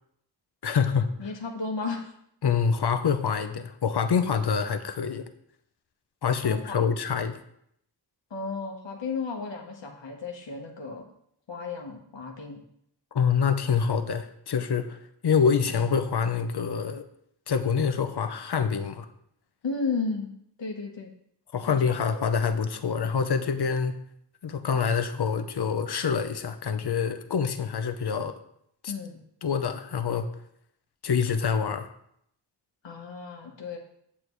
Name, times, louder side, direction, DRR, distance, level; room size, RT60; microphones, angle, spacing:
voice 1, 0.6-1.3 2.4-5.3 6.2-7.4 13.1-15.0 15.2-17.0 17.5-19.1 21.5-24.0 24.4-28.4 28.8-28.9 29.4-30.3 31.0-31.9, left 6 dB, 65° left, 9 dB, 0.8 m, -26 dB
voice 2, 1.2-2.1 6.4-6.8 8.3-11.0 11.5-12.6 15.7-15.9 19.6-20.3 20.6-21.1 21.9-22.3 28.9-29.2 32.8-33.8, left 4 dB, 85° left, 1 dB, 1.3 m, -34 dB
8.4 x 7.6 x 3.1 m, 0.71 s
wide cardioid pair, 75°, 43 cm